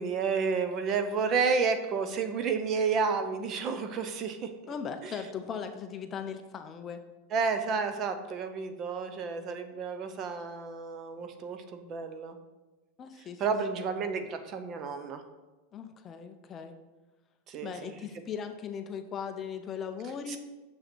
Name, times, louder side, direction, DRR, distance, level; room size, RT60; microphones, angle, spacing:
voice 1, 0.0-4.7 5.0-5.1 7.3-12.4 13.4-15.2 17.5-18.0 20.3-20.4, right 5 dB, 30° right, 8 dB, 0.7 m, -31 dB
voice 2, 4.7-7.0 13.0-13.4 15.7-16.7 17.6-20.4, left 7 dB, 20° left, 7 dB, 0.5 m, -38 dB
6.7 x 6.5 x 4.5 m, 1.2 s
supercardioid pair, 160°, 0 cm